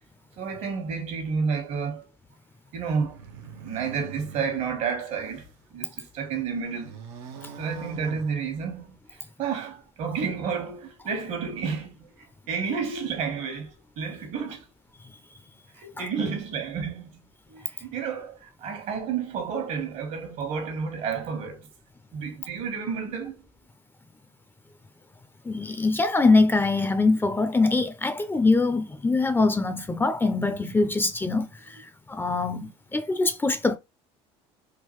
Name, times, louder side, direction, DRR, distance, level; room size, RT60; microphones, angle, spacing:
voice 1, 0.4-2.1 2.7-3.2 3.6-5.5 5.7-7.0 7.6-8.9 9.4-14.6 15.8-17.1 17.5-21.7 22.1-23.4, right 6 dB, 65° right, 1.3 m, -31 dB
sound 1, 3.0-5.6 6.1-8.9, right 6 dB, 85° right, 0.9 m, -44 dB
voice 2, 25.4-31.8 32.1-33.8, left 3 dB, 15° left, 0.5 m, -23 dB
3.7 x 2.3 x 3.1 m
supercardioid pair, 90°, 14 cm